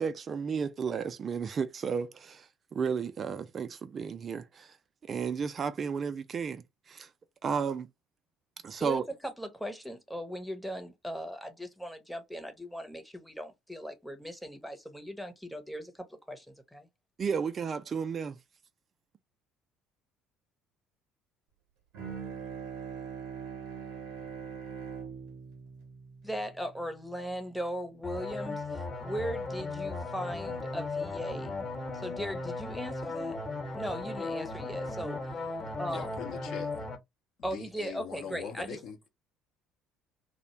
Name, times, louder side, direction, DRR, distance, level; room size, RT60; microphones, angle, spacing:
voice 1, 0.0-4.8 5.0-7.1 7.4-7.9 8.6-9.0 17.2-18.4, right 6 dB, 40° right, 0.3 m, -33 dB
voice 2, 8.8-16.9 26.2-31.5 31.9-33.4 33.7-35.2 35.8-36.1 37.4-38.8, equal, ahead, 0.7 m, -38 dB
Bowed string instrument, 21.9-27.4, right 6 dB, 70° right, 0.8 m, -42 dB
sound 1, 28.0-36.9, left 3 dB, 35° left, 1.0 m, -36 dB
voice 3, 35.9-36.7 37.4-39.1, left 7 dB, 55° left, 0.7 m, -42 dB
2.4 x 2.1 x 2.8 m
figure-of-eight pair, 55°, 0 cm